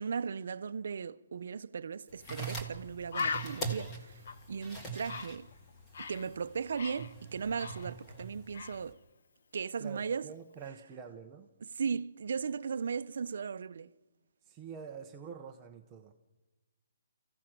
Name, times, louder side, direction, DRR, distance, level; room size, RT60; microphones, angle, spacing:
voice 1, 0.0-4.2 4.5-5.5 6.0-9.0 9.5-10.3 11.6-13.9, right 6 dB, 55° right, 0.6 m, -37 dB
sound 1, 2.1-8.9, right 3 dB, 10° left, 1.7 m, -43 dB
Bird, 2.2-2.4 2.7-2.8 3.1-6.3 6.6-8.2 8.5-8.8, left 5 dB, 50° left, 1.0 m, -40 dB
voice 2, 9.8-11.5 14.4-16.1, right 6 dB, 15° right, 0.7 m, -46 dB
29.5 x 15.5 x 6.1 m
hypercardioid pair, 175°, 0 cm